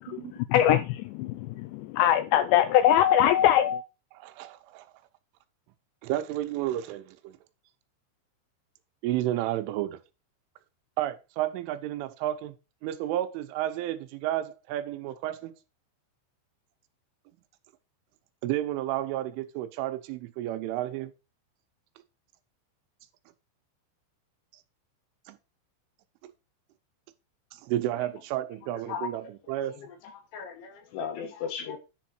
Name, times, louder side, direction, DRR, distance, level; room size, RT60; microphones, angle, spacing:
voice 1, 0.0-0.9 1.2-3.8, left 11 dB, 90° left, 2.5 m, -22 dB
voice 2, 4.1-4.9 6.0-7.4 9.0-10.0 11.0-12.6 12.8-15.5 18.4-21.1 25.3-25.4 26.2-26.3 27.5-29.8, right 13 dB, 80° right, 3.3 m, -31 dB
voice 3, 30.1-31.8, left 7 dB, 75° left, 3.6 m, -36 dB
10.0 x 5.2 x 4.4 m
omnidirectional pair, 5.7 m